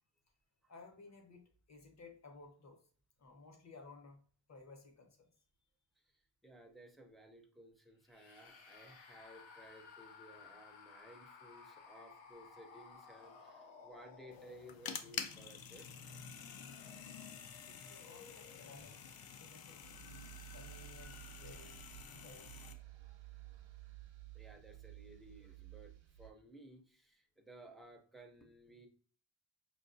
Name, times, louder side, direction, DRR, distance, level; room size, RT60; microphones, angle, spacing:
voice 1, 0.7-2.8 3.2-4.2 4.5-5.3 17.7-19.8 20.5-21.8 22.2-22.6 22.9-23.2, left 3 dB, 35° left, 3 dB, 0.8 m, -57 dB
voice 2, 6.0-15.9 17.3-17.4 24.3-28.9, right 1 dB, ahead, 2 dB, 0.4 m, -58 dB
sound 1, 8.1-15.1 15.8-22.3, left 5 dB, 90° left, 0.9 m, -59 dB
sound 2, 14.3-22.7, left 7 dB, 55° left, 0.5 m, -49 dB
sound 3, 19.8-26.3, right 16 dB, 90° right, 0.7 m, -54 dB
5.1 x 2.7 x 2.5 m, 0.43 s
wide cardioid pair, 165°, 45 cm